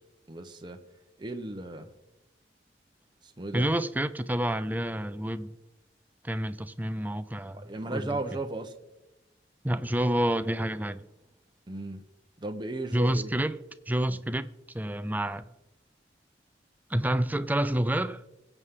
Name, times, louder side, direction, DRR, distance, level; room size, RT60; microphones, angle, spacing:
voice 1, 0.3-0.8 1.2-1.9 3.2-3.7 7.5-8.7 11.7-12.0 12.4-13.3 14.1-14.2, right 2 dB, 25° right, 0.9 m, -35 dB
voice 2, 3.5-5.6 6.2-8.2 9.6-11.1 12.9-14.5 14.7-15.4 16.9-18.3, right 1 dB, 10° right, 0.5 m, -29 dB
22.5 x 8.2 x 3.7 m
head